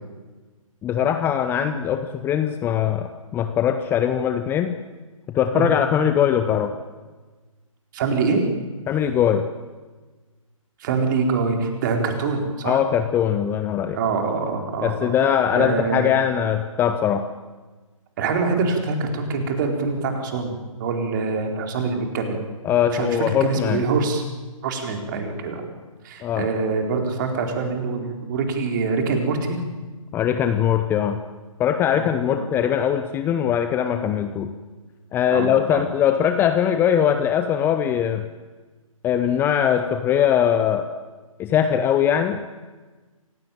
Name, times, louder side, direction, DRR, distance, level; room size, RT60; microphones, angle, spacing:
voice 1, 0.8-4.7 5.3-6.7 8.9-9.4 12.6-14.0 14.8-17.3 22.6-23.8 26.2-26.5 30.1-31.2 31.6-34.5 35.1-38.2 39.0-40.9 41.4-42.4, left 9 dB, 10° left, 8 dB, 0.8 m, -21 dB
voice 2, 7.9-8.4 10.8-12.8 13.9-15.1 15.5-16.1 18.2-22.4 22.9-24.2 24.6-25.7 26.0-29.6 31.9-32.5 35.3-35.8, right 4 dB, 35° right, 3 dB, 4.2 m, -25 dB
27.5 x 17.0 x 9.2 m, 1.3 s
figure-of-eight pair, 135°, 18 cm